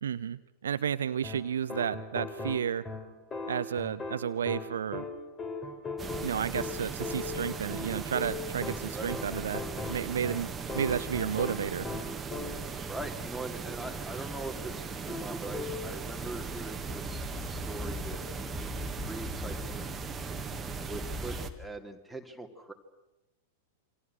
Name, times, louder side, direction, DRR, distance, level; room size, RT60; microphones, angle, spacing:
voice 1, 0.0-2.9 3.5-5.0 6.2-9.6 9.9-11.9, right 8 dB, 65° right, 13 dB, 0.8 m, -32 dB
sound 1, 1.2-12.8 15.1-15.9, left 3 dB, 20° left, 3.6 m, -39 dB
sound 2, 6.0-21.5, right 4 dB, 15° right, 2.0 m, -38 dB
voice 2, 12.9-19.8 20.8-22.7, right 2 dB, ahead, 6 dB, 3.0 m, -42 dB
28.5 x 25.0 x 6.4 m, 0.97 s
figure-of-eight pair, 95°, 0 cm